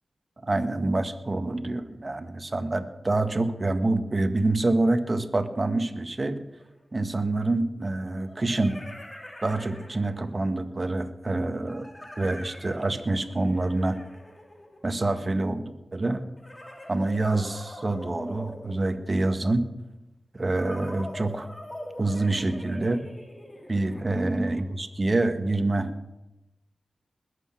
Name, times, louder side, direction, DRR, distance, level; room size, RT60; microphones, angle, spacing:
voice 1, 0.4-6.4 6.9-8.8 9.4-11.9 12.2-14.0 14.8-16.3 16.9-19.7 20.3-21.5 22.0-23.0 23.7-25.9, right 2 dB, 40° right, 8 dB, 1.5 m, -26 dB
sound 1, 6.6-6.7 8.1-10.4 11.7-15.2 16.4-19.4 20.6-24.9, left 1 dB, 20° left, 2.7 m, -43 dB
20.5 x 8.3 x 5.9 m, 0.91 s
cardioid pair, 45°, 0 cm